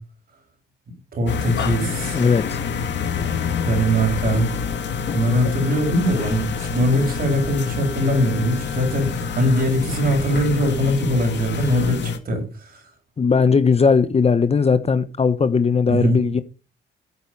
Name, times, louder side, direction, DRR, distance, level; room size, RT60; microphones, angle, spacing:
voice 1, 1.1-2.2 3.6-4.5 5.1-12.7 15.9-16.2, equal, 50° right, 6.8 m, -21 dB
sound 1, 1.3-12.2, left 6 dB, 65° left, 2.1 m, -27 dB
voice 2, 2.1-2.6 13.2-16.4, left 5 dB, 30° left, 1.0 m, -18 dB
13.0 x 8.5 x 5.5 m
cardioid pair, 90°, 20 cm